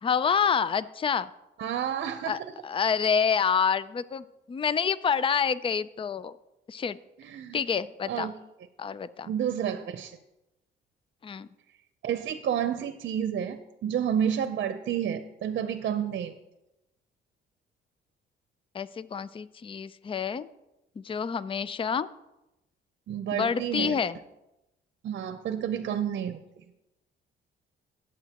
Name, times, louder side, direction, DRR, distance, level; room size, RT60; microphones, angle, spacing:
voice 1, 0.0-1.3 2.2-6.3 6.7-7.0 7.5-8.3 8.8-9.3 11.2-11.5 18.7-20.5 21.0-22.1 23.3-24.2, left 6 dB, 25° left, 16 dB, 0.4 m, -28 dB
voice 2, 1.6-2.4 7.2-7.6 8.1-8.3 9.2-10.2 12.0-16.3 23.1-24.0 25.0-26.4, right 9 dB, 60° right, 9 dB, 0.7 m, -30 dB
18.0 x 7.4 x 2.9 m, 0.94 s
cardioid pair, 90°, 20 cm